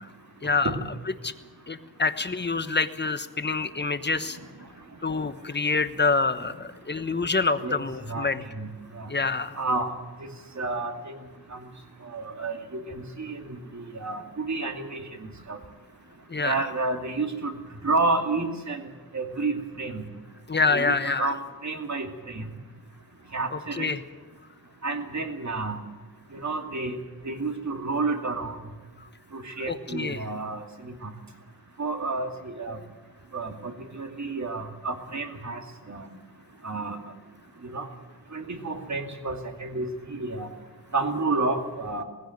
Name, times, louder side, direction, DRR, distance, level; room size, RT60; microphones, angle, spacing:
voice 1, 0.4-0.7 1.2-1.3 1.7-4.4 5.0-8.4 9.1-9.6 16.3-16.7 20.5-21.3 23.5-24.0 29.7-30.2 32.7-32.9, left 4 dB, 30° left, 10 dB, 1.2 m, -26 dB
voice 2, 9.6-9.9 10.2-10.3 10.6-11.1 11.5-11.6 12.1-15.6 16.4-17.5 17.8-18.8 19.1-20.0 20.7-21.4 21.6-22.5 23.3-23.9 24.8-25.8 26.3-27.0 27.2-28.6 29.3-31.1 31.8-32.8 33.3-35.6 35.9-36.1 36.6-37.0 37.6-37.9 38.3-40.5 40.9-42.0, right 3 dB, 50° right, 4 dB, 2.6 m, -30 dB
19.0 x 16.0 x 9.4 m, 1.3 s
wide cardioid pair, 70°, 36 cm